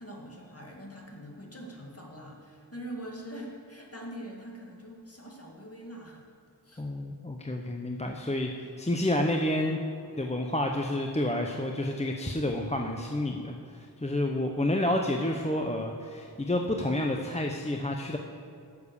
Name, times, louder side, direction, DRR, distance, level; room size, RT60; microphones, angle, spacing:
voice 1, 0.0-6.3 6.6-6.9, right 1 dB, 35° left, -1 dB, 2.0 m, -43 dB
voice 2, 6.8-8.5 8.8-9.8 10.1-18.2, left 1 dB, 15° left, 2 dB, 0.7 m, -29 dB
9.7 x 7.3 x 6.7 m, 2.5 s
wide cardioid pair, 40°, 42 cm